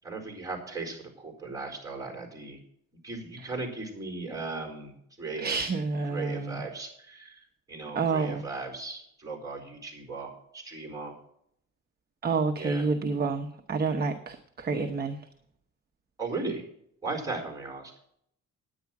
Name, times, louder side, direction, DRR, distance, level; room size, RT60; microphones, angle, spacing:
voice 1, 0.0-2.6 3.0-4.9 5.2-5.6 6.1-7.3 7.7-11.1 12.6-12.9 16.2-16.6 17.0-17.9, right 3 dB, 10° right, 1 dB, 4.4 m, -37 dB
voice 2, 5.4-6.6 7.9-8.4 12.2-15.2, right 4 dB, 35° right, 4 dB, 0.9 m, -29 dB
10.0 x 9.5 x 5.9 m, 0.69 s
cardioid pair, 145°, 30 cm